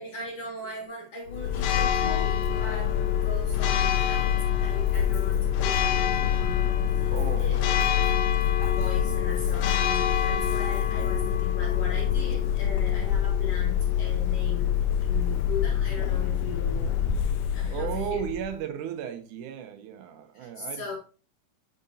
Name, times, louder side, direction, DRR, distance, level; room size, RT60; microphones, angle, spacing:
voice 1, 0.0-7.1 7.4-7.6 8.3-17.1 17.5-18.2 20.3-21.0, left 3 dB, 55° left, 2.0 m, -39 dB
Church bell, 1.3-18.5, left 9 dB, 80° left, 1.8 m, -25 dB
voice 2, 7.1-8.1 17.7-21.0, right 9 dB, 75° right, 2.3 m, -35 dB
7.7 x 5.2 x 2.7 m
omnidirectional pair, 3.7 m